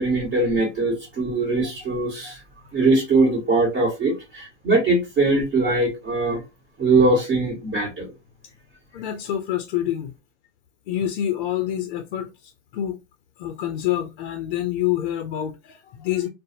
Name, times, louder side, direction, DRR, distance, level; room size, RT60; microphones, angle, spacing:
voice 1, 0.0-2.4 2.7-6.4 6.8-8.1, right 2 dB, 30° right, 1.3 m, -21 dB
voice 2, 8.9-10.1 10.9-13.0 13.4-16.3, left 11 dB, 50° left, 0.5 m, -27 dB
2.6 x 2.0 x 2.6 m
hypercardioid pair, 125°, 35 cm